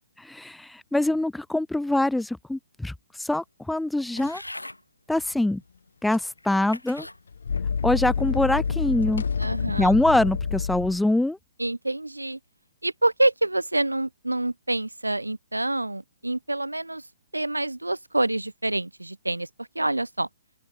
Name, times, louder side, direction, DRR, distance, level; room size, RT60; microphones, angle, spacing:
voice 1, 0.2-4.4 5.1-5.6 6.0-7.1 7.8-9.2 9.8-11.4, left 1 dB, 5° left, 0.7 m, -24 dB
sound 1, 4.2-4.8 5.6-5.7 6.4-7.2 7.8-8.2, left 1 dB, 90° left, 3.4 m, -41 dB
sound 2, 6.1-6.2 7.3-11.0, left 6 dB, 65° left, 0.5 m, -28 dB
voice 2, 9.4-9.9 11.6-12.4 12.8-17.1 17.3-20.3, right 2 dB, 85° right, 5.0 m, -27 dB
open air
figure-of-eight pair, 125°, 0 cm